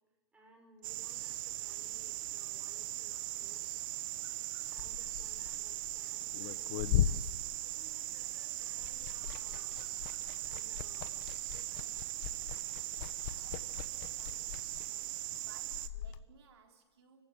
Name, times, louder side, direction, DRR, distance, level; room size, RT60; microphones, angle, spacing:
voice 1, 0.3-3.8 4.7-7.3 7.6-9.8 10.4-11.1 11.5-12.2 13.7-13.8, right 2 dB, 10° right, 2 dB, 6.7 m, -62 dB
sound 1, 0.8-15.9, right 16 dB, 50° right, 1.1 m, -40 dB
Liquid, 4.6-8.3 8.6-16.2, left 10 dB, 50° left, 1.4 m, -39 dB
voice 2, 13.2-17.3, right 6 dB, 75° right, 2 dB, 3.8 m, -63 dB
29.0 x 16.0 x 9.3 m, 1.2 s
hypercardioid pair, 140°, 14 cm